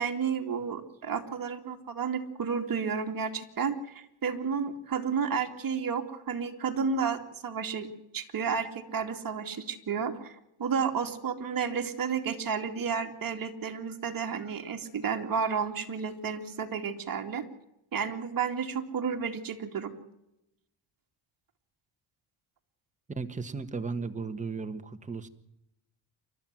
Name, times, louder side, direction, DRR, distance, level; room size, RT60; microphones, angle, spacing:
voice 1, 0.0-7.9 8.1-17.4 17.9-19.9, right 6 dB, 40° right, 4 dB, 2.8 m, -32 dB
voice 2, 23.1-25.3, right 4 dB, 15° right, 7 dB, 1.6 m, -35 dB
28.5 x 13.0 x 7.7 m, 0.84 s
cardioid pair, 110°, 50 cm